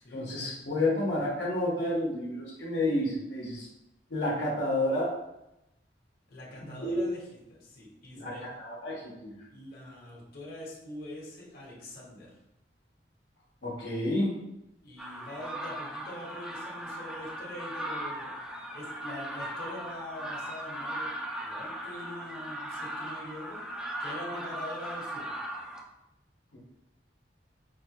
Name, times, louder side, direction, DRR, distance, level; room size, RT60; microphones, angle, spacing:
voice 1, 0.1-3.7 4.1-5.1 6.6-7.0 8.1-9.4 13.6-14.4 26.5-26.6, left 1 dB, 85° left, -4 dB, 1.1 m, -30 dB
voice 2, 6.3-8.4 9.5-12.3 14.8-18.4 18.7-23.7 24.0-25.4, left 1 dB, 60° left, -5 dB, 1.1 m, -43 dB
sound 1, 15.0-25.8, right 1 dB, 5° right, 0.4 m, -38 dB
5.4 x 2.3 x 2.8 m, 0.88 s
head